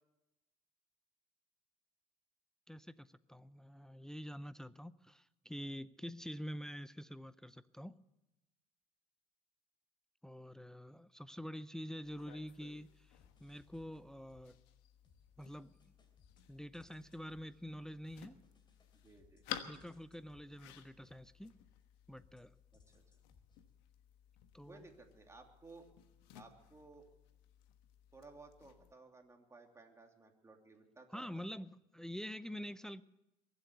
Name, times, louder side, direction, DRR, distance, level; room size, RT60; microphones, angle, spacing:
voice 1, 2.7-8.0 10.2-14.6 15.4-15.7 16.5-18.4 19.6-21.5 22.1-22.5 24.5-24.9 31.1-33.0, equal, 5° left, 14 dB, 0.5 m, -47 dB
sound 1, 12.0-28.9, left 11 dB, 75° left, 1.3 m, -55 dB
sound 2, 13.2-14.7 15.0-21.8 22.2-23.7, left 3 dB, 25° left, 3.0 m, -70 dB
voice 2, 18.9-19.4 22.7-22.8 24.7-25.9 26.3-27.1 28.1-31.5, right 3 dB, 15° right, 3 dB, 2.8 m, -58 dB
22.5 x 7.9 x 8.1 m, 0.92 s
supercardioid pair, 90°, 17 cm